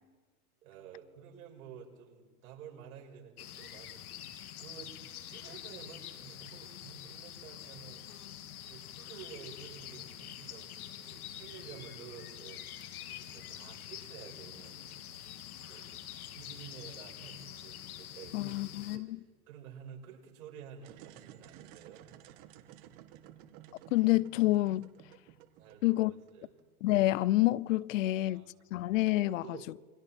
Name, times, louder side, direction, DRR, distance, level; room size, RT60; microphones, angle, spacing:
voice 1, 0.6-4.2 4.6-4.9 5.2-8.1 8.7-12.8 13.1-15.2 15.7-15.9 16.3-18.6 18.9-22.0 25.6-26.5 28.0-28.5 29.2-29.8, right 7 dB, 75° right, 6.1 m, -51 dB
sound 1, 3.4-19.0, left 11 dB, 75° left, 2.2 m, -46 dB
voice 2, 18.3-19.2 23.9-24.9 25.8-26.1 26.8-28.4 28.7-29.4, left 17 dB, 60° left, 0.6 m, -28 dB
sound 2, 20.8-26.6, right 11 dB, 40° right, 1.7 m, -54 dB
28.5 x 23.5 x 4.5 m
supercardioid pair, 155°, 44 cm